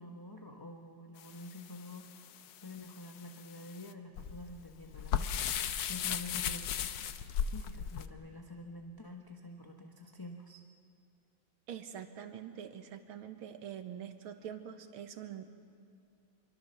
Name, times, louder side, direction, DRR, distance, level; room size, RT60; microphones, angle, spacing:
voice 1, 0.0-2.3 2.6-5.3 5.9-6.7 7.5-10.6, left 2 dB, 15° left, 2 dB, 0.9 m, -47 dB
sound 1, 1.2-8.1, left 8 dB, 70° left, 1.4 m, -37 dB
voice 2, 11.7-15.5, right 9 dB, 90° right, 7 dB, 2.0 m, -45 dB
26.0 x 23.0 x 6.9 m, 2.5 s
omnidirectional pair, 2.2 m